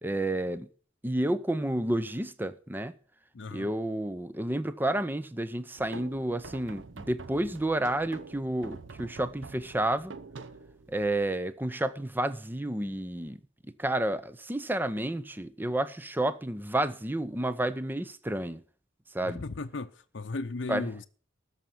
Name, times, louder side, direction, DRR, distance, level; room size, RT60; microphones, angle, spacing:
voice 1, 0.0-0.7 1.0-2.9 3.5-10.1 10.9-13.4 13.8-18.6 19.1-19.4 20.7-20.9, right 1 dB, 10° right, 0.6 m, -30 dB
voice 2, 3.3-3.7 19.2-21.1, left 3 dB, 65° left, 0.7 m, -36 dB
sound 1, 5.8-11.3, right 3 dB, 75° right, 0.8 m, -46 dB
13.5 x 5.7 x 9.2 m
head